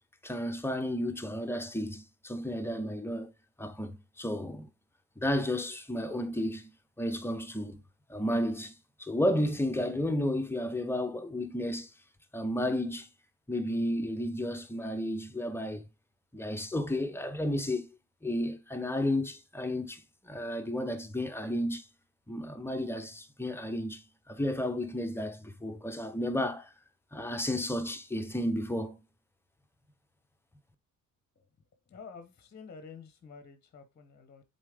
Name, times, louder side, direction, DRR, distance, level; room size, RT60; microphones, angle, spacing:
voice 1, 0.2-3.3 3.6-4.7 5.2-6.7 7.0-7.8 8.1-11.9 12.3-13.1 13.5-15.8 16.3-17.9 18.2-21.9 22.3-26.7 27.1-29.0, left 1 dB, 5° left, 0.7 m, -32 dB
voice 2, 31.9-34.4, left 5 dB, 30° left, 0.9 m, -49 dB
7.1 x 4.2 x 3.5 m
cardioid pair, 115°, 33 cm